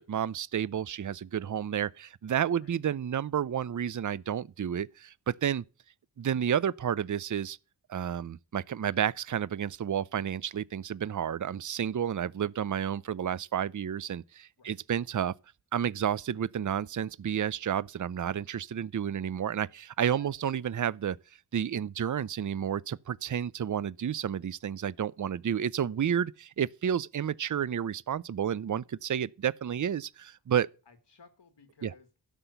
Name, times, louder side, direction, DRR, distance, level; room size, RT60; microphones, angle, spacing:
voice 1, 0.0-5.6 6.2-7.6 7.9-15.3 15.7-21.2 21.5-30.7 31.8-31.9, right 9 dB, 45° right, 0.6 m, -31 dB
voice 2, 30.9-32.2, left 4 dB, 80° left, 2.0 m, -57 dB
12.0 x 5.8 x 8.1 m
cardioid pair, 50°, 42 cm